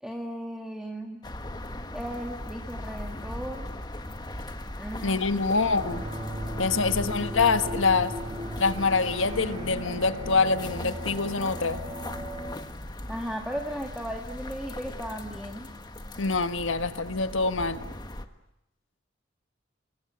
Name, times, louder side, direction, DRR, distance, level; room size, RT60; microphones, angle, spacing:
voice 1, 0.0-1.2 1.9-3.7 4.8-5.2 6.7-6.8 13.1-15.7, equal, 5° right, 1 dB, 2.0 m, -36 dB
sound 1, 1.2-18.3, left 1 dB, 20° left, 1.5 m, -39 dB
voice 2, 5.0-6.0 6.6-8.1 8.6-11.8 16.2-17.8, left 4 dB, 85° left, 9 dB, 1.6 m, -25 dB
sound 2, 5.6-12.5, equal, 25° right, 7.0 m, -37 dB
29.0 x 22.5 x 8.9 m, 0.88 s
head